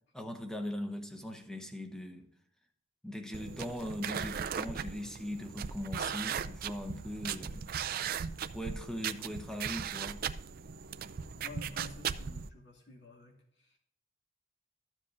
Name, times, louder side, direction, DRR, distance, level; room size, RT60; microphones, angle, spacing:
voice 1, 0.1-2.3 3.0-7.7 8.5-10.2, left 1 dB, 5° left, 0.8 m, -40 dB
sound 1, 3.3-12.5, right 7 dB, 45° right, 0.4 m, -38 dB
voice 2, 11.3-13.8, left 3 dB, 60° left, 2.5 m, -51 dB
13.0 x 7.4 x 2.6 m
head